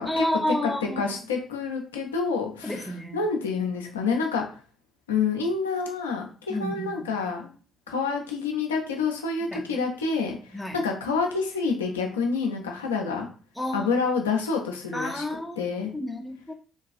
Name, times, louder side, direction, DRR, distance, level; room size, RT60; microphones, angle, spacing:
voice 1, 0.0-1.1 2.6-3.2 6.5-7.0 9.5-9.7 10.5-10.8 13.6-13.9 14.9-15.6 15.9-16.5, left 1 dB, ahead, 0.6 m, -30 dB
voice 2, 1.0-4.6 5.1-7.5 7.9-13.3 13.7-15.2 15.6-15.9, left 5 dB, 85° left, 0.4 m, -28 dB
2.6 x 2.3 x 2.5 m
hypercardioid pair, 45°, 0 cm